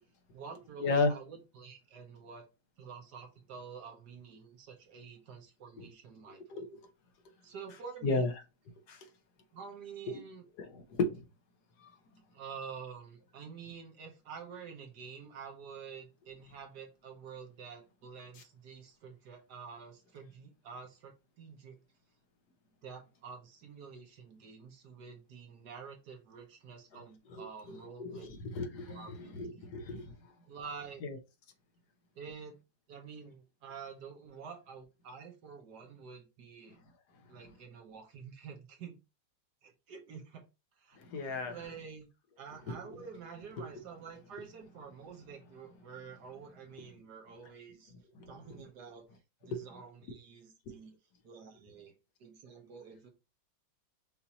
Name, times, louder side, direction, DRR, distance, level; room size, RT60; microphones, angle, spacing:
voice 1, 0.3-2.4 2.8-6.7 7.4-8.3 9.5-10.4 12.3-21.8 22.8-28.3 28.9-29.7 30.5-31.0 32.1-32.6 32.9-36.8 37.3-39.0 39.6-40.4 40.8-41.0 41.2-42.1 42.4-47.9 48.3-49.0 49.4-50.9 51.2-51.9 52.2-53.1, right 6 dB, 65° right, 1.5 m, -48 dB
voice 2, 6.3-6.8 8.0-8.3 8.9-9.1 10.1-10.2 10.6-11.2 27.3-30.1 31.0-31.2 41.1-41.6 42.7-42.8 43.6-43.7 49.5-49.6 50.7-50.8, left 3 dB, 65° left, 1.3 m, -34 dB
5.7 x 2.7 x 2.8 m
omnidirectional pair, 2.0 m